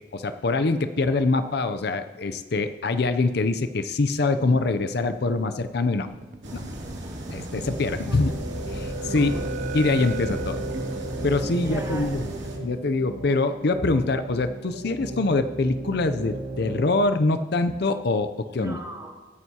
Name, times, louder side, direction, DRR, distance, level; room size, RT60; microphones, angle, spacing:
voice 1, 0.1-6.1 6.5-6.6 7.3-8.3 8.7-9.3 9.7-10.6 11.2-12.3 12.6-18.8, left 3 dB, 60° left, 9 dB, 0.5 m, -24 dB
sound 1, 5.0-5.8 6.1-6.9 7.2-7.9 8.3-12.3, right 3 dB, 45° right, 0.5 m, -38 dB
sound 2, 6.4-12.6, right 1 dB, 85° right, 2.5 m, -36 dB
sound 3, 7.6-16.8, right 2 dB, 65° right, 1.7 m, -36 dB
voice 2, 8.1-9.8 11.6-12.2 18.5-19.1, right 1 dB, 20° right, -5 dB, 3.5 m, -41 dB
23.5 x 9.1 x 2.9 m, 1.2 s
head